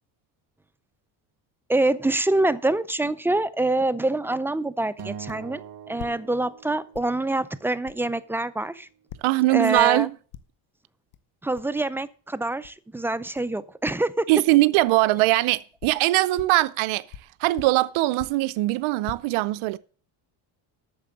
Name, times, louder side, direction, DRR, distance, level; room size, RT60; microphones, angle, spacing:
voice 1, 1.7-5.6 5.9-8.9 9.5-10.1 11.4-14.3, right 2 dB, 5° right, 0.4 m, -25 dB
Acoustic guitar, 5.0-7.4, right 8 dB, 45° right, 1.2 m, -42 dB
sound 1, 5.3-5.5 5.9-6.6 6.9-7.2 7.8-8.0 9.1-9.4 9.8-10.0 10.3-10.7 11.1-11.2 11.6-11.7 12.6-12.8 13.3-13.6 13.8-14.1 14.8-14.9 15.6-16.7 17.1-18.5 18.9-19.1, left 10 dB, 85° left, 1.0 m, -43 dB
voice 2, 9.2-10.1 14.3-17.0 17.4-19.8, right 19 dB, 75° right, 0.7 m, -21 dB
9.0 x 6.7 x 7.4 m
cardioid pair, 105°, 49 cm